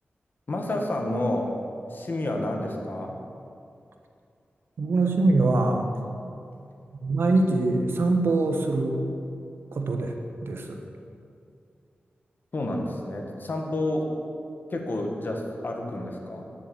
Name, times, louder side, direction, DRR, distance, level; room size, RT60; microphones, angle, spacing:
voice 1, 0.5-1.5 1.9-3.2 12.5-14.1 14.7-16.4, left 1 dB, 55° left, 2 dB, 1.9 m, -29 dB
voice 2, 4.8-5.9 7.0-9.0 9.7-10.1 10.4-10.8, right 2 dB, 85° right, 3 dB, 1.3 m, -23 dB
10.5 x 7.0 x 8.8 m, 2.5 s
cardioid pair, 60°, 4 cm